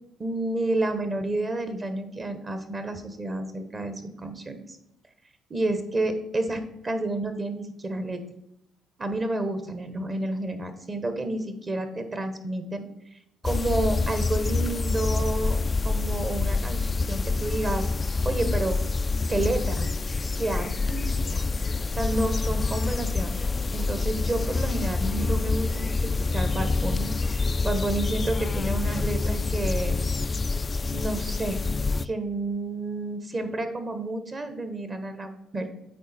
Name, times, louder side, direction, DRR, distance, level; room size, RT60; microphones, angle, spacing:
voice 1, 0.2-4.8 5.5-8.2 9.0-12.8 13.4-15.6 15.8-17.9 18.2-18.8 19.3-19.9 20.3-21.4 22.0-23.4 23.7-30.0 30.9-31.6 32.0-35.7, right 2 dB, 35° right, 8 dB, 1.2 m, -30 dB
sound 1, 13.4-32.1, left 3 dB, 30° left, 0.3 m, -27 dB
8.4 x 4.4 x 4.4 m, 0.84 s
supercardioid pair, 65°, 0 cm